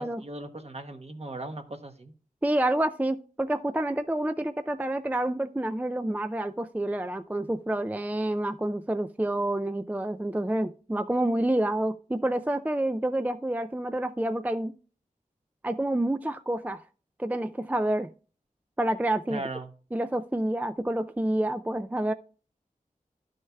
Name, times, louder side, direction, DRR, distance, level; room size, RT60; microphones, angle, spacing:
voice 1, 0.0-2.1 19.3-19.7, right 2 dB, 45° right, 1.0 m, -38 dB
voice 2, 2.4-14.7 15.6-16.8 17.2-18.1 18.8-19.4 19.9-22.1, right 1 dB, 10° right, 0.3 m, -28 dB
11.5 x 6.4 x 2.2 m
wide cardioid pair, 55°, 14 cm